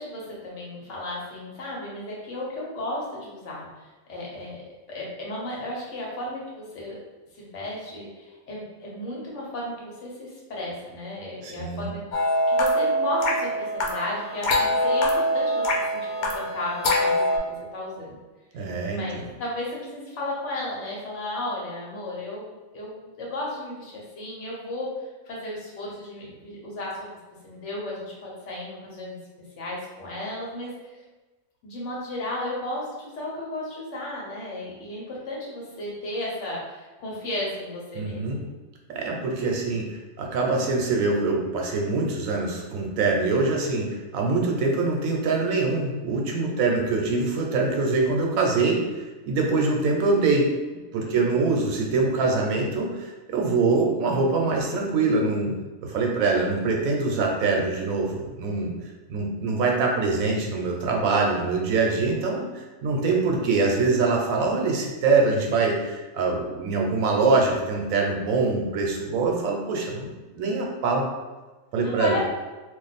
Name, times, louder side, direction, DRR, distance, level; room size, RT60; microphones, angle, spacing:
voice 1, 0.0-4.6 4.9-7.0 7.3-18.2 18.9-24.9 25.2-27.1 27.4-29.2 29.6-31.0 31.6-38.5 46.4-46.7 51.0-51.4 71.7-72.2, left 1 dB, 60° left, -4 dB, 1.1 m, -34 dB
voice 2, 11.4-11.9 18.5-19.2 37.9-38.4 38.9-48.8 49.3-50.5 50.9-55.5 55.8-58.7 59.1-70.1 70.3-71.1 71.7-72.2, right 3 dB, 80° right, 0 dB, 1.0 m, -24 dB
sound 1, 12.1-17.4, equal, 90° left, 1.1 m, -24 dB
2.5 x 2.3 x 4.0 m, 1.2 s
omnidirectional pair, 1.4 m